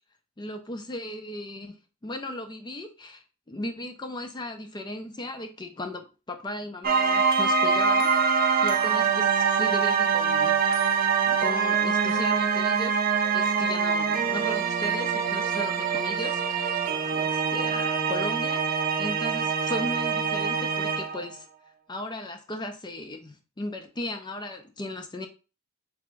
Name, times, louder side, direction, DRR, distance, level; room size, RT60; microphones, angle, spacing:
voice 1, 0.4-10.6 11.2-13.0 13.3-16.8 17.1-21.5 21.9-25.3, left 1 dB, 20° left, 0.5 m, -36 dB
sound 1, 6.8-21.3, right 6 dB, 40° right, 0.5 m, -24 dB
3.3 x 3.0 x 4.6 m
head